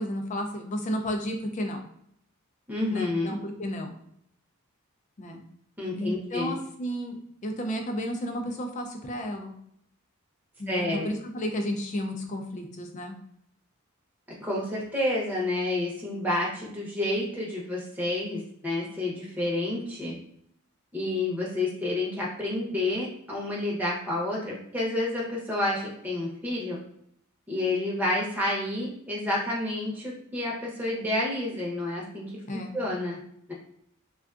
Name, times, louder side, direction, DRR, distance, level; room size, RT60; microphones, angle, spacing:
voice 1, 0.0-1.8 2.9-3.9 5.2-5.4 5.9-9.5 10.6-13.2 32.5-32.8, equal, 35° left, 4 dB, 0.4 m, -32 dB
voice 2, 2.7-3.4 5.8-6.5 10.7-11.1 14.4-20.1 20.9-26.8 27.5-33.2 33.5-33.6, left 2 dB, 10° right, -5 dB, 0.8 m, -29 dB
3.5 x 2.3 x 2.4 m, 0.71 s
head